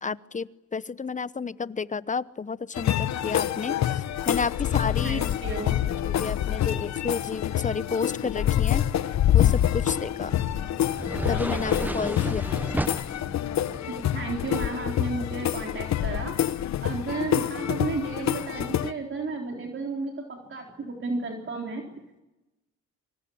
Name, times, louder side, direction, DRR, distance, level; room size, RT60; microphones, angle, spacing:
voice 1, 0.0-5.3 6.0-8.9 9.3-10.4 11.3-12.5, left 5 dB, 25° left, 17 dB, 0.9 m, -31 dB
sound 1, 2.7-18.9, left 11 dB, 65° left, 1.1 m, -26 dB
voice 2, 5.0-5.9 13.7-16.4 16.8-21.8, right 3 dB, 40° right, 1 dB, 3.8 m, -33 dB
sound 2, 9.5-15.0, right 1 dB, 5° right, 1.0 m, -35 dB
25.5 x 25.0 x 8.7 m, 0.98 s
cardioid pair, 90°, 30 cm